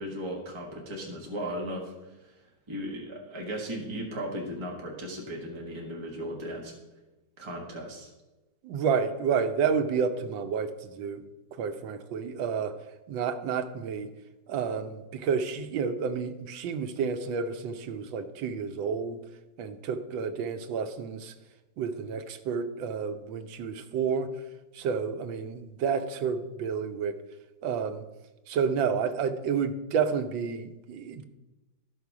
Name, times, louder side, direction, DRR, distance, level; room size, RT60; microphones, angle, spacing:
voice 1, 0.0-2.1 2.7-6.7 7.4-8.1, equal, 15° right, -1 dB, 1.2 m, -36 dB
voice 2, 8.6-11.2 11.6-12.7 13.1-14.1 14.5-19.2 19.6-21.3 21.8-24.3 24.7-27.1 27.6-28.0 28.5-31.2, right 6 dB, 90° right, 8 dB, 1.5 m, -30 dB
13.0 x 5.8 x 4.7 m, 1.1 s
omnidirectional pair, 2.0 m